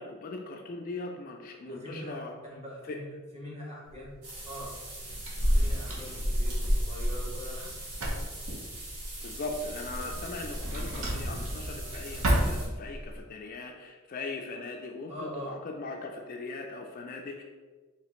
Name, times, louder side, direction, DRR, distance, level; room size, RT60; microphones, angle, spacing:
voice 1, 0.0-2.3 2.9-3.0 9.2-17.4, left 3 dB, 40° left, 2 dB, 0.3 m, -39 dB
voice 2, 1.6-2.2 2.5-4.1 4.4-4.8 5.5-7.8 15.1-15.5, equal, 30° right, -5 dB, 1.3 m, -42 dB
Drawer open or close, 3.8-13.2, right 1 dB, 70° right, 0.8 m, -35 dB
sound 1, 4.2-12.6, equal, 90° right, 1.5 m, -33 dB
4.9 x 2.9 x 3.0 m, 1.4 s
head